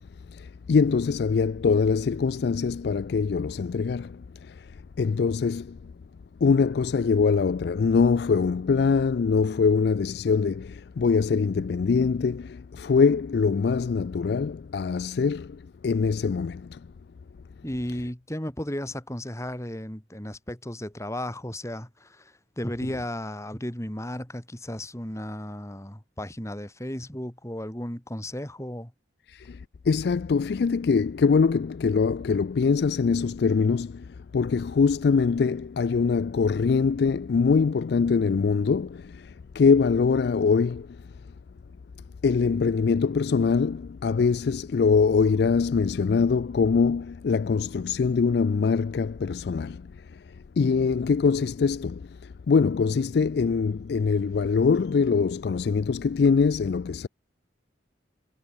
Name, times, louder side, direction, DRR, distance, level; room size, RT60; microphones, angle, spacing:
voice 1, 0.3-4.7 5.0-5.9 6.4-16.8 29.3-41.0 42.2-57.1, left 5 dB, 60° left, 0.4 m, -23 dB
voice 2, 17.6-28.9, left 1 dB, 15° left, 2.5 m, -34 dB
head